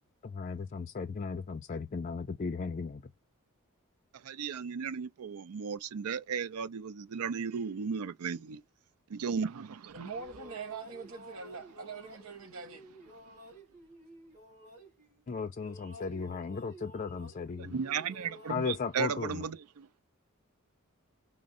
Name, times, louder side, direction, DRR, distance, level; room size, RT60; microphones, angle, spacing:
voice 1, 0.2-3.0 15.3-17.8 18.5-19.5, left 4 dB, 35° left, 0.4 m, -36 dB
voice 2, 4.2-8.6 9.1-9.9 17.6-19.9, right 6 dB, 85° right, 0.5 m, -35 dB
sound 1, 9.9-15.3 15.5-18.5, equal, 35° right, 3.2 m, -53 dB
voice 3, 9.9-12.8, right 5 dB, 70° right, 1.0 m, -43 dB
5.1 x 2.0 x 3.7 m
head